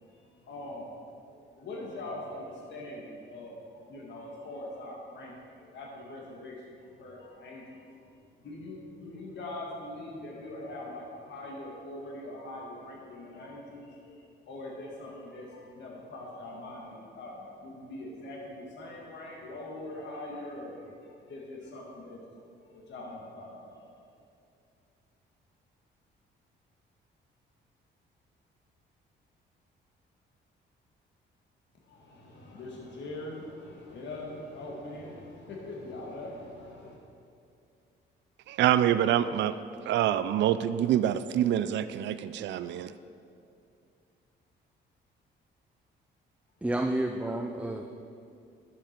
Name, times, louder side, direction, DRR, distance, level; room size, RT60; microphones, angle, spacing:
voice 1, 0.5-0.9 1.3-3.6 3.8-6.6 6.8-7.9 8.4-14.2 14.5-20.8 21.0-22.2 22.6-23.8 31.9-37.0, left 1 dB, 65° left, -3 dB, 1.8 m, -42 dB
voice 2, 38.5-39.5 39.9-42.9, right 11 dB, 65° right, 13 dB, 0.4 m, -26 dB
voice 3, 46.6-47.9, right 1 dB, 5° right, 4 dB, 0.5 m, -30 dB
11.5 x 7.3 x 4.5 m, 2.4 s
cardioid pair, 90°, 20 cm